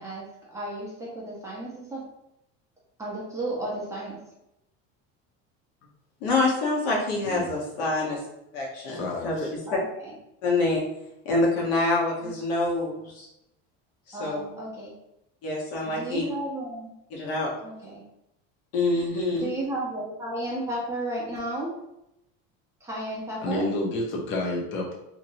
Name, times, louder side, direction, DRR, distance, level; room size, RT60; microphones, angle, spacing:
voice 1, 0.0-2.0 3.0-4.2 9.7-10.1 12.2-12.3 14.1-14.9 15.8-16.9 17.6-18.0 19.3-21.7 22.8-23.7, right 1 dB, 10° right, -5 dB, 0.8 m, -33 dB
voice 2, 6.2-8.2 8.5-9.6 10.4-10.8 11.2-13.3 14.1-14.4 15.4-16.2 17.1-17.5 18.7-19.5, left 2 dB, 85° left, -2 dB, 1.2 m, -26 dB
voice 3, 7.2-7.5 8.9-9.5 23.4-25.0, left 1 dB, 40° left, -2 dB, 0.7 m, -30 dB
2.9 x 2.8 x 2.7 m, 0.84 s
cardioid pair, 155°, 31 cm